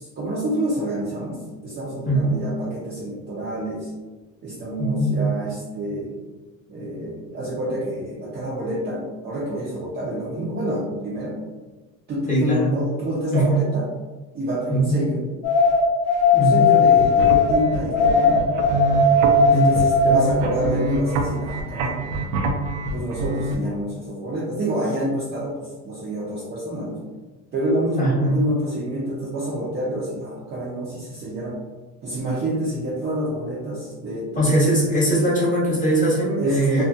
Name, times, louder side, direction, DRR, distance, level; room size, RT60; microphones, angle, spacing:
voice 1, 0.0-3.9 4.4-6.2 6.7-11.4 12.1-13.8 14.3-15.2 16.3-18.4 19.5-22.0 22.8-27.0 27.5-31.6 32.0-34.7 36.4-36.8, right 1 dB, 25° right, -7 dB, 0.5 m, -28 dB
voice 2, 4.8-5.2 12.3-12.7 13.3-13.4 14.7-15.0 16.4-16.7 19.5-19.7 28.0-28.4 34.4-36.8, right 1 dB, 20° left, -6 dB, 0.9 m, -20 dB
sound 1, 15.4-17.6 17.9-20.2, left 4 dB, 80° left, 1.2 m, -17 dB
sound 2, 16.9-23.5, right 1 dB, 85° right, 0.6 m, -26 dB
2.7 x 2.6 x 2.3 m, 1.2 s
cardioid pair, 130°, 41 cm